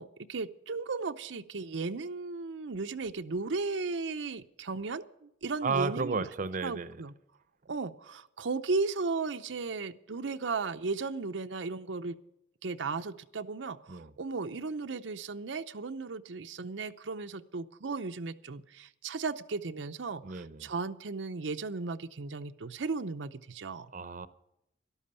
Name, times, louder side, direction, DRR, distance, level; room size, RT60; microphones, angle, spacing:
voice 1, 0.0-6.3 6.6-7.1 7.7-12.2 12.6-23.9, right 4 dB, 85° right, 0.7 m, -35 dB
voice 2, 5.6-7.0 13.9-14.1 20.2-20.7 23.9-24.3, right 4 dB, 45° right, 0.7 m, -33 dB
13.0 x 12.0 x 6.8 m
head